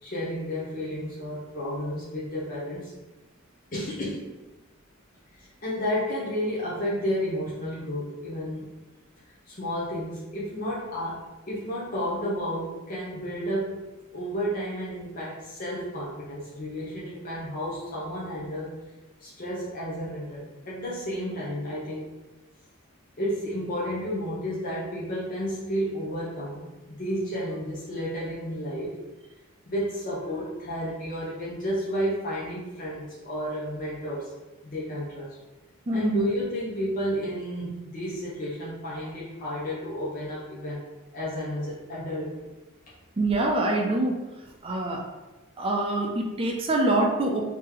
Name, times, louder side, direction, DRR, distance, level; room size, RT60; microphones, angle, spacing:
voice 1, 0.0-2.9 3.7-4.3 5.3-8.7 9.5-18.7 19.2-22.1 23.2-29.0 29.7-34.3 34.6-35.4 35.9-40.8 41.1-42.4, equal, 40° left, -7 dB, 0.7 m, -32 dB
voice 2, 35.9-36.2 43.2-44.2 44.6-45.0 45.6-47.4, right 2 dB, 25° right, 0 dB, 0.4 m, -25 dB
3.1 x 2.8 x 3.7 m, 1.1 s
head